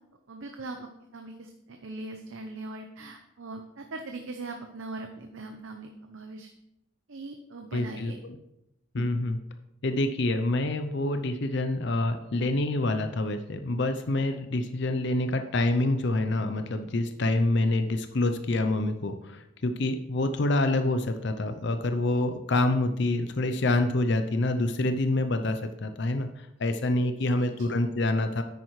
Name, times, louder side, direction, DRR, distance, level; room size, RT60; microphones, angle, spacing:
voice 1, 0.3-6.5 7.1-8.2 27.3-27.8, right 2 dB, 75° right, 4 dB, 0.8 m, -41 dB
voice 2, 7.7-8.1 8.9-9.4 9.8-28.4, left 2 dB, 60° left, 8 dB, 0.6 m, -27 dB
10.0 x 8.9 x 3.2 m, 0.85 s
head